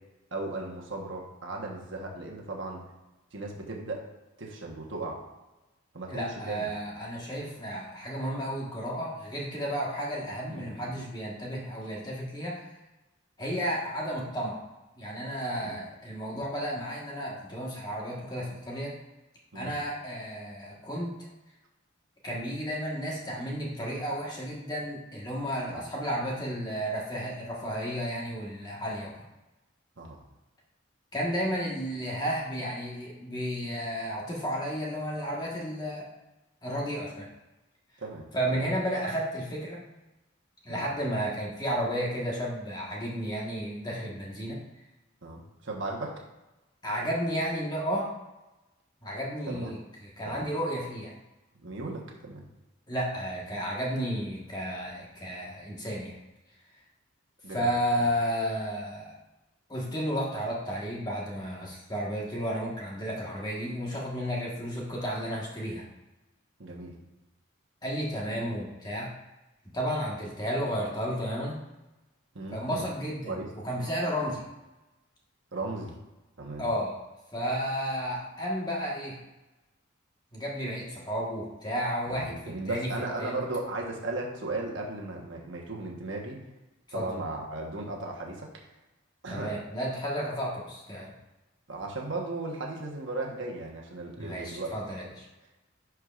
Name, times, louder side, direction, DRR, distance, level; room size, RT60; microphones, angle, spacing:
voice 1, 0.3-2.8 3.3-4.0 4.4-5.2 5.9-6.7 10.5-10.9 15.6-15.8 16.3-16.4 19.5-19.7 25.7-25.8 30.0-30.2 38.0-38.6 40.7-40.9 45.2-46.2 49.5-49.7 50.2-50.5 51.6-52.4 57.4-57.7 58.0-58.1 66.6-66.9 72.3-72.8 73.3-73.5 75.5-76.0 76.4-76.6 82.1-86.4 86.9-88.5 89.2-89.5 91.7-94.7, right 2 dB, 65° right, -1 dB, 1.2 m, -36 dB
voice 2, 6.1-12.6 13.4-14.6 15.0-18.9 19.5-21.3 22.2-29.3 31.1-36.1 36.6-37.3 38.3-39.8 40.6-44.6 46.8-48.1 49.0-51.1 52.9-56.1 57.5-59.2 59.7-65.8 67.8-69.1 69.7-71.6 72.5-74.4 76.6-77.0 77.3-79.2 80.3-82.9 83.2-83.4 86.9-87.1 89.3-91.1 94.2-95.3, equal, 20° left, -4 dB, 1.5 m, -32 dB
11.0 x 4.7 x 2.5 m, 1.0 s
head